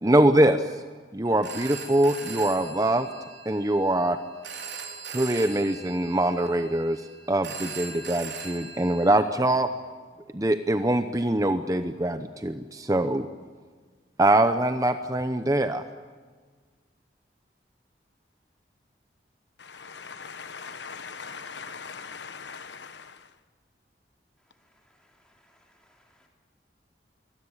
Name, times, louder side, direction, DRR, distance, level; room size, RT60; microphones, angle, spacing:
voice 1, 0.0-0.6 1.1-3.1 3.5-4.2 5.1-7.0 7.3-9.7 10.3-13.3 14.2-15.8, right 1 dB, 20° right, 0.8 m, -23 dB
Telephone, 1.2-9.1, right 5 dB, 90° right, 4.2 m, -40 dB
voice 2, 19.6-23.3, left 5 dB, 85° left, 1.2 m, -41 dB
voice 3, 24.6-26.3, left 1 dB, 5° left, 3.5 m, -64 dB
24.0 x 17.5 x 9.8 m
head